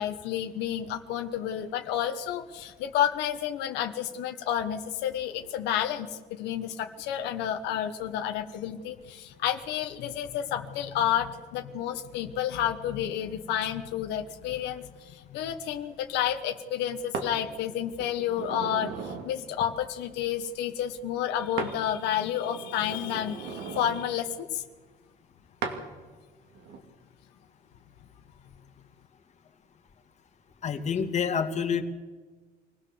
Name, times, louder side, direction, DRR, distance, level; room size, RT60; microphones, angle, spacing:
voice 1, 0.0-24.6, left 10 dB, 90° left, 6 dB, 1.2 m, -30 dB
sound 1, 17.1-17.3 18.0-19.3 21.6-21.8 22.2-24.0 25.6-25.8 26.5-26.8, right 5 dB, 85° right, 2.7 m, -37 dB
voice 2, 30.6-31.8, left 7 dB, 45° left, 5 dB, 2.1 m, -27 dB
24.5 x 17.0 x 7.1 m, 1.4 s
cardioid pair, 110°, 17 cm